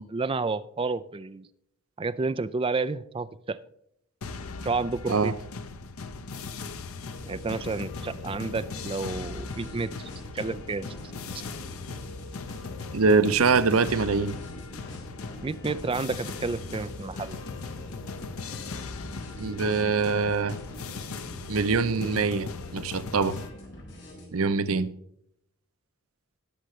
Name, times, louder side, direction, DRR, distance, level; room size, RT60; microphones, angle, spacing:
voice 1, 0.1-1.5 2.0-3.6 4.6-5.3 7.3-10.9 15.4-17.4, right 3 dB, 25° right, 0.4 m, -30 dB
sound 1, 4.2-23.5, left 4 dB, 90° left, 0.8 m, -39 dB
sound 2, 7.1-24.3, left 1 dB, 55° left, 3.8 m, -45 dB
voice 2, 12.9-14.4 19.4-20.6 21.5-23.4 24.3-24.9, right 4 dB, 90° right, 0.7 m, -24 dB
19.0 x 6.6 x 3.2 m
head